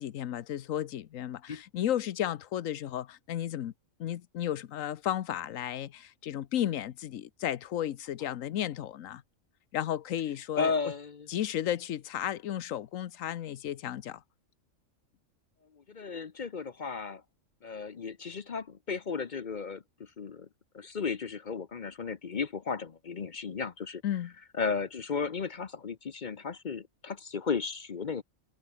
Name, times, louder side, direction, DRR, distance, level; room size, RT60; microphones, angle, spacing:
voice 1, 0.0-3.7 4.0-9.2 9.7-10.7 11.3-14.2 24.0-24.3, left 11 dB, 85° left, 1.2 m, -33 dB
voice 2, 10.5-11.3 15.7-17.2 17.6-20.5 20.7-24.0 24.5-28.2, left 5 dB, 45° left, 0.8 m, -34 dB
omnidirectional pair, 1.3 m